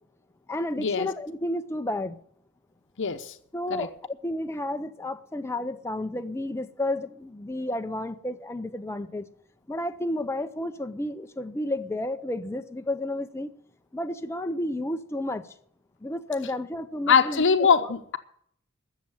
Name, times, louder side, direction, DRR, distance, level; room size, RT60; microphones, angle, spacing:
voice 1, 0.5-2.1 3.5-3.9 4.2-9.2 9.7-13.5 13.9-15.4 16.0-17.9, left 1 dB, 10° left, 0.5 m, -31 dB
voice 2, 3.0-3.3 3.7-3.9 17.1-18.2, left 6 dB, 60° left, 0.8 m, -22 dB
13.0 x 7.3 x 8.7 m
head